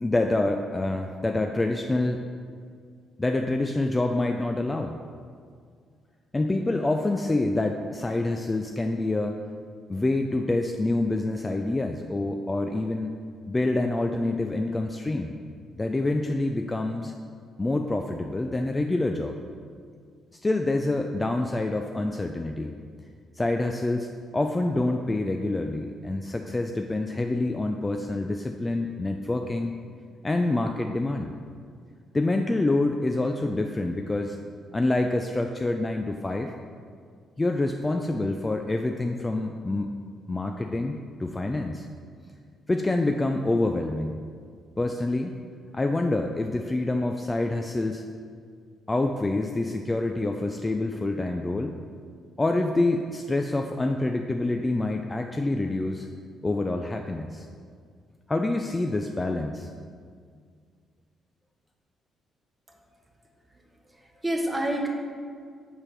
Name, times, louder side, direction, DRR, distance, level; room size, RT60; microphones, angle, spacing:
voice 1, 0.0-2.2 3.2-5.0 6.3-9.4 9.9-13.2 13.5-15.3 15.8-17.1 17.6-19.4 20.4-22.7 23.4-29.7 30.2-31.3 32.1-34.4 34.7-36.5 37.4-39.9 40.3-41.9 42.7-44.2 44.8-45.4 45.7-48.0 48.9-51.8 52.4-56.1 56.4-57.5 58.3-59.7, left 2 dB, 20° left, 4 dB, 0.3 m, -27 dB
voice 2, 63.9-64.9, right 1 dB, 15° right, 1 dB, 1.0 m, -29 dB
5.0 x 4.7 x 5.7 m, 2.1 s
cardioid pair, 90°, 0 cm